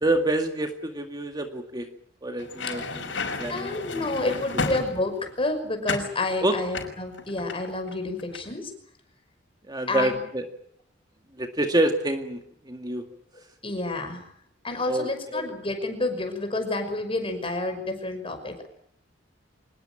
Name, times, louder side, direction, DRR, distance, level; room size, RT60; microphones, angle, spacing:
voice 1, 0.0-1.9 2.2-3.0 3.4-4.3 6.4-6.6 9.7-10.4 11.4-12.4 12.7-13.1 14.9-15.1, right 1 dB, 20° right, 5 dB, 2.0 m, -27 dB
sound 1, 2.4-5.3 5.8-6.1 6.7-7.9 8.2-8.5, left 3 dB, 80° left, 5.8 m, -32 dB
voice 2, 3.5-8.7 9.9-10.2 13.6-14.2 14.6-18.7, left 2 dB, 30° left, 7 dB, 5.9 m, -29 dB
25.5 x 20.5 x 9.0 m, 0.66 s
head